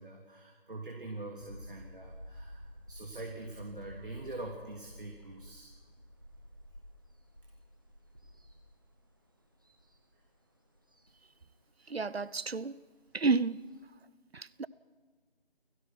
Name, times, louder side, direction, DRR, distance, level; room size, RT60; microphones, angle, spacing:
voice 1, 0.0-5.8 7.4-7.5 10.1-10.2, right 2 dB, 55° right, 3.4 m, -44 dB
sound 1, 1.4-13.8, equal, 20° right, 1.8 m, -52 dB
voice 2, 11.9-12.8 13.1-13.7 14.3-14.7, right 4 dB, 85° right, 0.9 m, -31 dB
29.0 x 17.5 x 6.1 m
figure-of-eight pair, 180°, 30 cm